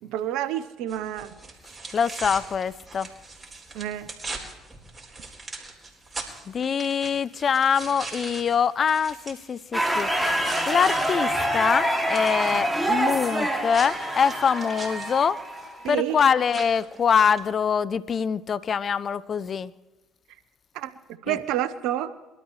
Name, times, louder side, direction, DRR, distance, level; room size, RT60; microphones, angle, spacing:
voice 1, 0.0-1.4 3.7-4.1 12.5-12.6 15.8-16.2 20.7-20.9 21.2-22.1, right 12 dB, 75° right, 12 dB, 0.9 m, -29 dB
sound 1, 0.9-11.1 11.4-17.5, right 3 dB, 25° right, 4.2 m, -41 dB
voice 2, 1.9-3.1 6.5-15.4 15.9-19.7 21.3-21.4, left 7 dB, 45° left, 18 dB, 0.5 m, -24 dB
sound 2, 9.7-15.9, right 1 dB, 5° left, 2.5 m, -26 dB
23.5 x 12.5 x 3.2 m, 1.1 s
hypercardioid pair, 60°, 0 cm